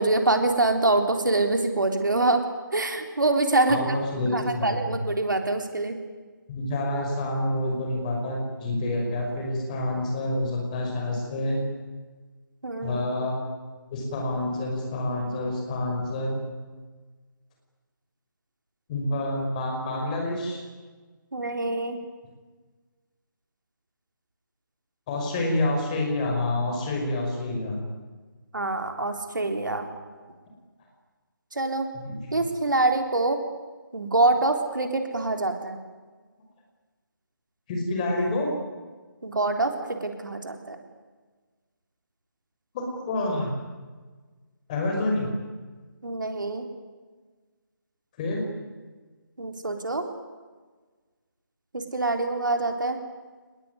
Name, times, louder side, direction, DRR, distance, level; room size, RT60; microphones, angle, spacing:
voice 1, 0.0-2.4 2.7-3.8 4.3-6.0 12.6-13.0 21.3-22.0 28.5-29.9 31.5-31.9 32.3-33.4 33.9-35.8 39.2-40.8 46.0-46.6 49.4-50.0 51.7-53.0, right 2 dB, 65° right, 5 dB, 3.7 m, -25 dB
voice 2, 3.7-4.9 6.5-11.6 12.8-13.4 13.9-16.3 18.9-20.6 25.1-27.8 31.9-32.4 37.7-38.5 42.7-43.5 44.7-45.3 48.2-48.5, left 1 dB, 20° left, 1 dB, 5.7 m, -28 dB
25.5 x 20.5 x 9.8 m, 1.4 s
figure-of-eight pair, 150°, 11 cm